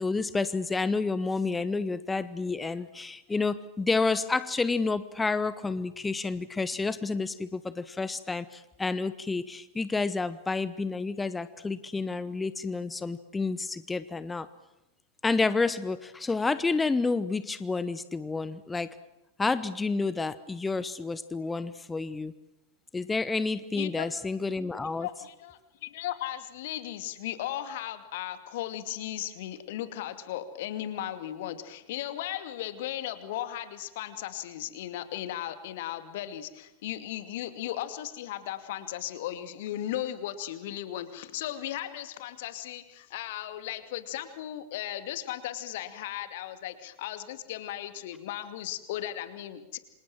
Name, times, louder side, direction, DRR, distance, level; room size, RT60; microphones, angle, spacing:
voice 1, 0.0-14.5 15.2-18.9 19.4-22.3 22.9-25.1, left 3 dB, 10° left, 15 dB, 1.0 m, -30 dB
voice 2, 23.7-24.1 25.0-49.8, left 12 dB, 55° left, 10 dB, 2.5 m, -36 dB
28.0 x 26.5 x 7.5 m, 0.92 s
figure-of-eight pair, 90°, 0 cm